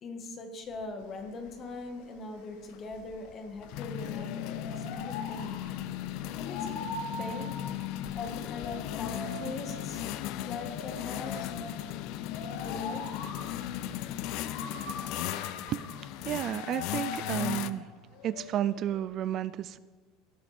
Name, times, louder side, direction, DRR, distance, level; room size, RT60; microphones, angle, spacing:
voice 1, 0.0-5.7 6.4-6.8 7.2-7.6 8.1-10.0 10.4-11.5 12.6-13.3, left 3 dB, 30° left, 5 dB, 1.7 m, -41 dB
sound 1, 0.8-0.9 1.3-1.5 2.7-17.7, left 12 dB, 60° left, 0.5 m, -37 dB
sound 2, 1.0-19.0, left 2 dB, 85° left, 2.6 m, -43 dB
voice 2, 16.2-17.9 18.2-19.8, right 11 dB, 40° right, 16 dB, 0.3 m, -32 dB
17.0 x 9.1 x 4.3 m, 1.4 s
cardioid pair, 145°, 0 cm